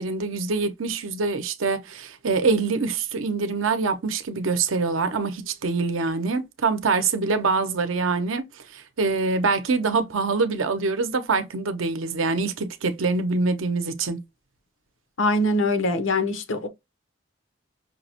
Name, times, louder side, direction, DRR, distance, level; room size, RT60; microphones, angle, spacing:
voice 1, 0.0-8.4 8.7-14.2, right 4 dB, 85° right, 0.7 m, -25 dB
voice 2, 15.2-16.7, left 1 dB, 80° left, 0.7 m, -23 dB
5.6 x 2.1 x 2.8 m
head